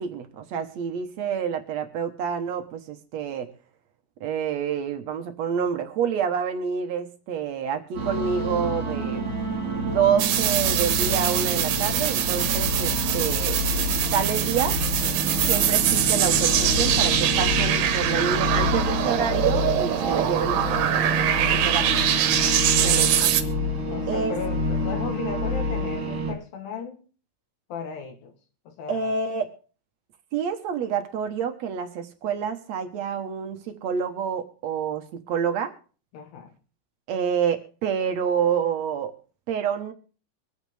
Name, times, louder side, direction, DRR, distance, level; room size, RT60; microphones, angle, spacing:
voice 1, 0.0-3.5 4.2-9.2 9.8-13.6 14.1-14.8 15.5-22.0 22.8-23.3 24.1-24.4 28.9-29.5 30.3-35.7 37.1-39.1 39.5-39.9, right 7 dB, 60° right, 7 dB, 2.1 m, -28 dB
sound 1, 7.9-26.3, left 1 dB, 35° right, 3.2 m, -28 dB
sound 2, 10.2-23.4, right 10 dB, 75° right, 2.7 m, -23 dB
Wind instrument woodwind instrument, 12.4-21.9, left 1 dB, 15° left, 2.6 m, -48 dB
voice 2, 22.7-23.4 23.9-27.0 27.7-28.3 28.7-29.2 36.1-36.5, left 5 dB, 75° left, 5 dB, 3.1 m, -36 dB
24.5 x 9.0 x 3.4 m, 0.38 s
omnidirectional pair, 4.1 m